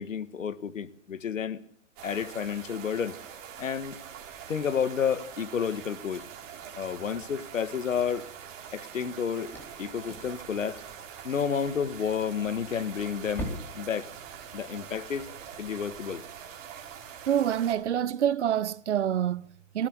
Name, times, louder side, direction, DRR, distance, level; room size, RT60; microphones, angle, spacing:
voice 1, 0.0-1.6 2.0-3.2 3.6-4.0 4.5-6.2 6.7-8.3 8.7-9.5 9.8-10.8 11.2-14.1 14.5-15.3 15.6-16.2, left 7 dB, 80° left, 1.9 m, -31 dB
sound 1, 2.0-17.7, right 8 dB, 25° right, 4.2 m, -44 dB
sound 2, 7.8-15.0, right 1 dB, 5° left, 3.9 m, -45 dB
voice 2, 17.2-19.9, right 10 dB, 65° right, 0.9 m, -27 dB
18.5 x 17.0 x 8.3 m
hypercardioid pair, 155°, 38 cm